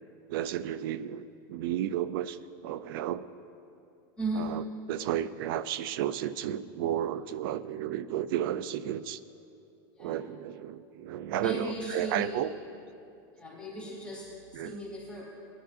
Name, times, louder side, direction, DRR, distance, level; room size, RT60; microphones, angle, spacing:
voice 1, 0.3-2.4 2.6-3.3 4.4-4.6 4.9-9.2 10.0-12.5 14.5-14.8, right 11 dB, 70° right, 15 dB, 0.5 m, -32 dB
voice 2, 4.2-4.5 10.0-10.2 11.4-12.5 13.3-15.2, right 1 dB, 10° left, -5 dB, 3.1 m, -36 dB
20.5 x 10.5 x 2.6 m, 2.7 s
supercardioid pair, 120°, 12 cm